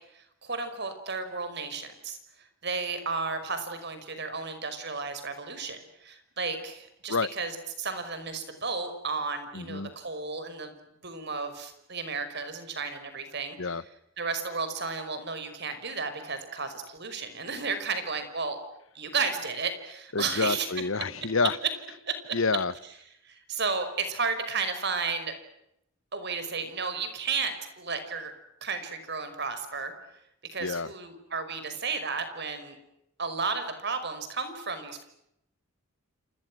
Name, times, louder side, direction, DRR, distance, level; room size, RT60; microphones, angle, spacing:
voice 1, 0.1-10.7 11.0-13.8 14.2-18.6 18.9-20.7 22.1-22.2 23.2-25.3 26.1-28.3 28.6-29.9 30.4-32.8 33.2-35.0, right 4 dB, 55° right, 9 dB, 5.4 m, -33 dB
voice 2, 9.5-9.9 13.6-13.8 20.1-21.6 22.3-22.7 30.6-30.9, left 4 dB, 70° left, 18 dB, 1.0 m, -28 dB
29.5 x 28.5 x 6.2 m, 0.81 s
head